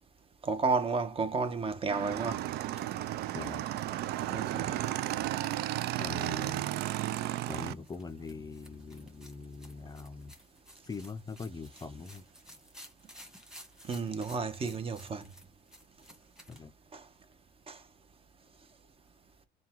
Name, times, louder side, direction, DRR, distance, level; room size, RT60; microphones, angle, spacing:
voice 1, 0.4-2.5 4.3-4.8 13.9-15.3 16.9-17.0 17.7-17.8, right 4 dB, 35° right, 0.9 m, -32 dB
Motorcycle / Engine, 1.9-7.7, right 14 dB, 70° right, 0.4 m, -33 dB
sound 1, 2.3-16.6, equal, 5° right, 1.5 m, -56 dB
voice 2, 3.3-3.6 6.0-6.7 7.5-10.3 10.8-12.3 16.5-16.7, left 4 dB, 20° left, 0.5 m, -42 dB
3.6 x 2.3 x 4.4 m
cardioid pair, 110°, 17 cm